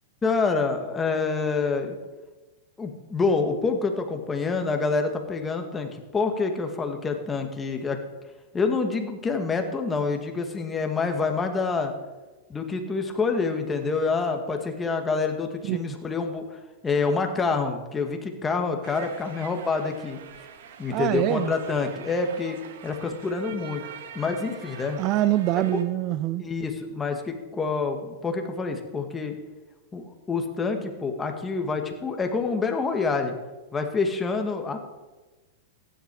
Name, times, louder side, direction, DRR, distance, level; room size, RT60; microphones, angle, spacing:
voice 1, 0.2-2.0 2.8-8.0 8.5-11.9 12.5-20.2 20.8-22.6 22.8-23.8 24.1-25.0 26.4-29.3 29.9-33.4 33.7-34.8, left 4 dB, 15° left, 4 dB, 2.0 m, -27 dB
sound 1, 18.8-25.8, right 7 dB, 70° right, 1.6 m, -44 dB
voice 2, 20.9-21.5 25.0-26.5, right 14 dB, 40° right, 16 dB, 0.4 m, -24 dB
15.0 x 10.5 x 4.8 m, 1.2 s
hypercardioid pair, 115°, 0 cm